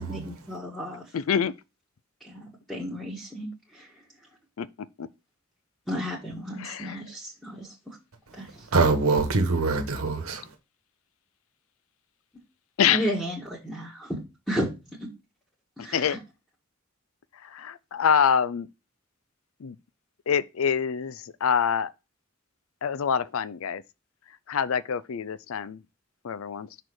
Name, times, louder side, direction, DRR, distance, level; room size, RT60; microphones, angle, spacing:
voice 1, 0.0-1.0 2.2-2.4 2.7-3.9 5.9-8.0 8.3-8.7 12.9-14.2 14.5-14.7 15.8-16.2, equal, 5° left, 1.7 m, -33 dB
voice 2, 1.1-1.5 4.6-4.7 5.0-5.1 6.6-7.0 12.8-13.1 15.8-16.2 17.4-18.7 19.6-19.8 20.3-21.9 22.8-23.8 24.5-25.8 26.2-26.7, left 7 dB, 80° left, 0.4 m, -26 dB
voice 3, 8.7-10.4, right 3 dB, 90° right, 1.2 m, -24 dB
6.3 x 4.5 x 4.8 m
head